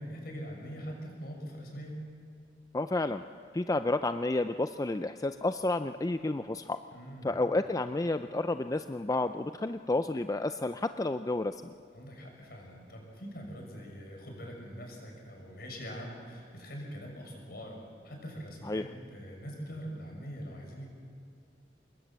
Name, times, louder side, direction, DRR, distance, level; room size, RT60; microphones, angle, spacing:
voice 1, 0.0-2.1 6.9-7.4 11.9-20.9, equal, 60° left, 1 dB, 6.6 m, -43 dB
voice 2, 2.7-3.2 3.5-6.8 7.2-11.7 18.7-18.9, left 2 dB, 20° left, 10 dB, 0.5 m, -31 dB
25.5 x 21.5 x 7.5 m, 2.5 s
head